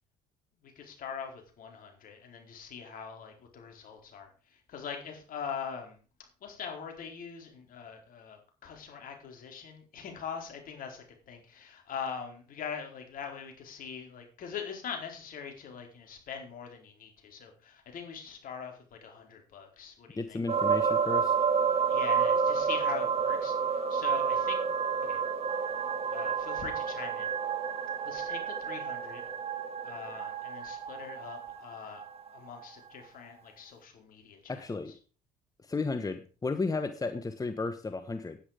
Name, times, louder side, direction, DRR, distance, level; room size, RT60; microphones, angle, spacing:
voice 1, 0.6-6.0 6.4-20.4 21.9-25.2 26.1-27.3 28.0-29.2 29.8-32.0 32.3-34.9, left 7 dB, 60° left, 3 dB, 4.3 m, -42 dB
voice 2, 20.2-21.3 34.5-34.9 35.6-38.4, left 3 dB, 20° left, 10 dB, 1.1 m, -33 dB
sound 1, 20.5-32.3 32.6-32.7, right 6 dB, 40° right, 2.2 m, -30 dB
10.0 x 9.9 x 5.1 m, 0.37 s
supercardioid pair, 70°, 16 cm